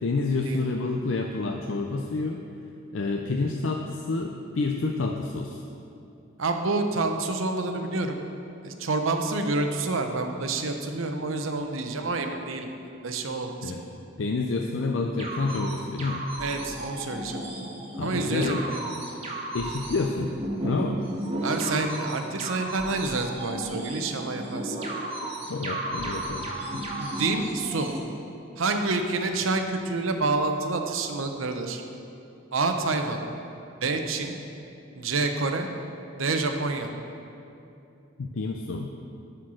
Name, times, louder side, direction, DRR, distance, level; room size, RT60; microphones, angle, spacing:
voice 1, 0.0-2.4 2.9-5.6 13.6-13.8 14.2-16.2 18.0-18.6 19.5-20.3 20.6-21.0 25.5-26.5 26.7-26.8 38.2-38.9, left 3 dB, 65° left, 3 dB, 0.5 m, -28 dB
voice 2, 6.4-8.2 8.6-12.7 13.0-13.7 16.4-17.4 18.0-18.8 21.4-24.8 27.0-27.9 28.6-31.8 32.5-33.2 33.8-34.4 35.0-35.7 36.2-36.9, right 3 dB, 80° right, 5 dB, 0.8 m, -28 dB
sound 1, 15.2-28.0, right 1 dB, 30° right, 1.4 m, -34 dB
11.5 x 4.5 x 6.2 m, 2.7 s
head